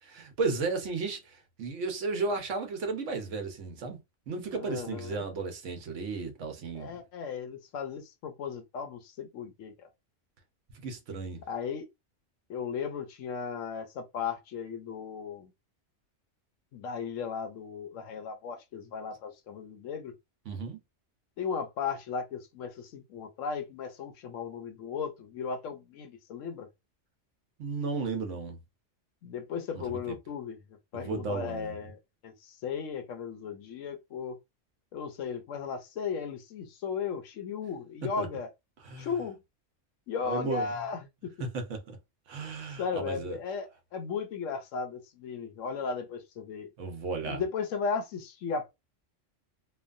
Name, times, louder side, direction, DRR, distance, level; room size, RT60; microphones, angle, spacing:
voice 1, 0.0-4.0 4.3-7.0 10.7-11.4 20.5-20.8 27.6-28.6 29.7-30.2 30.9-31.8 38.2-38.3 38.8-39.1 40.2-40.7 41.4-42.0 42.3-43.4 46.8-47.4, right 4 dB, 70° right, 1.1 m, -34 dB
voice 2, 4.5-5.2 6.8-9.9 11.5-11.9 12.5-15.5 16.7-20.1 21.4-26.7 29.2-30.6 30.9-34.4 34.9-38.5 39.0-39.4 40.1-41.3 42.8-46.7 47.2-48.7, left 6 dB, 85° left, 1.0 m, -36 dB
3.1 x 2.2 x 2.4 m
omnidirectional pair, 1.3 m